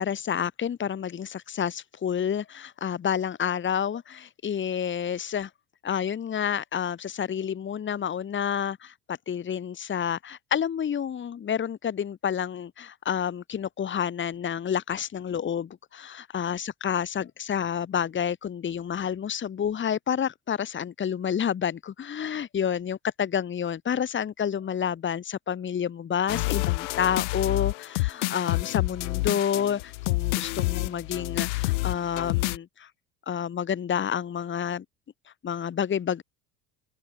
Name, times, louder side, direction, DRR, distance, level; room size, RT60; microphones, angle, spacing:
voice 1, 0.0-5.5 5.8-32.9 33.3-34.8 35.4-36.2, left 8 dB, 35° left, 2.7 m, -29 dB
sound 1, 26.3-32.6, left 22 dB, 90° left, 0.7 m, -28 dB
open air
supercardioid pair, 100°, 35 cm